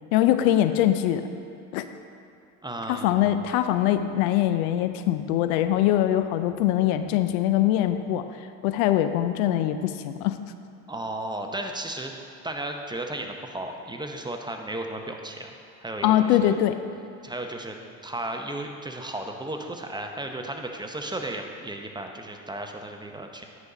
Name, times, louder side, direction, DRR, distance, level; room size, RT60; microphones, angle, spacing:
voice 1, 0.1-1.2 1.7-1.8 2.9-8.3 8.6-10.3 16.0-16.8, left 12 dB, 75° left, 10 dB, 0.5 m, -22 dB
voice 2, 2.6-3.4 10.9-12.1 12.4-15.5 15.8-16.6 17.2-17.8 18.0-23.4, right 1 dB, 10° right, 3 dB, 0.7 m, -34 dB
9.7 x 4.1 x 4.9 m, 2.7 s
hypercardioid pair, 75°, 42 cm